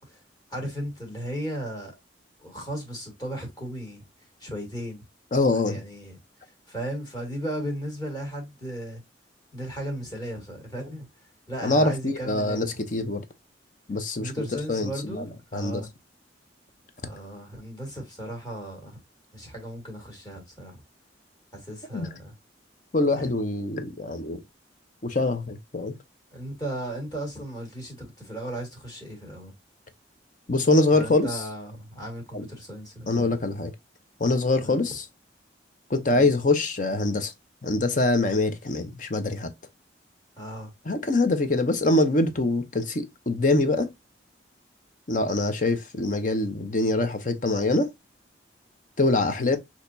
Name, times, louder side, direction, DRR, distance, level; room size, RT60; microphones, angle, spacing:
voice 1, 0.5-1.9 2.4-4.0 4.4-5.0 5.7-6.2 6.7-9.0 9.5-11.1 11.5-12.7 14.2-15.9 17.0-19.0 19.3-20.8 21.5-22.3 23.1-23.3 26.3-29.5 30.9-33.3 34.6-34.8 36.1-36.3 40.4-40.7 49.4-49.6, right 1 dB, 20° left, 2.0 m, -36 dB
voice 2, 5.3-5.8 11.6-13.2 13.9-15.8 21.9-22.1 22.9-24.4 25.0-25.9 30.5-31.4 32.3-32.4 33.1-33.7 34.2-35.1 35.9-37.3 37.6-39.5 40.9-43.9 45.1-47.9 49.0-49.6, left 2 dB, 45° left, 0.8 m, -24 dB
6.4 x 3.0 x 2.7 m
head